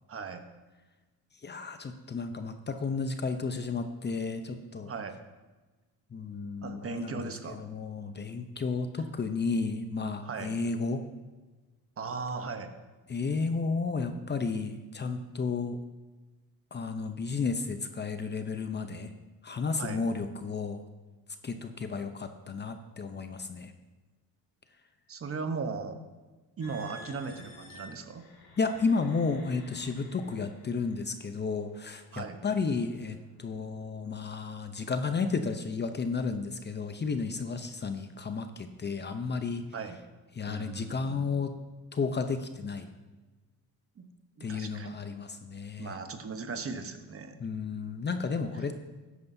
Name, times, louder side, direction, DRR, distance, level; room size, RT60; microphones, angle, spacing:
voice 1, 0.1-0.5 4.9-5.2 6.6-7.7 10.2-10.5 12.0-12.7 19.8-20.0 25.1-26.0 26.6-28.3 32.1-32.4 39.7-40.0 40.5-41.4 44.0-44.1 44.4-44.9 45.8-47.4, right 4 dB, 35° right, 7 dB, 1.0 m, -38 dB
voice 2, 1.4-4.9 6.1-11.0 13.1-15.8 16.7-19.1 19.4-20.8 21.4-23.7 28.6-39.6 40.3-41.5 41.9-42.9 44.4-46.0 47.4-48.8, left 4 dB, 30° left, 8 dB, 0.7 m, -32 dB
sound 1, 26.6-31.1 31.8-32.0 32.6-32.9, left 1 dB, 70° left, 2.3 m, -51 dB
13.5 x 9.5 x 2.7 m, 1.2 s
cardioid pair, 90°, 38 cm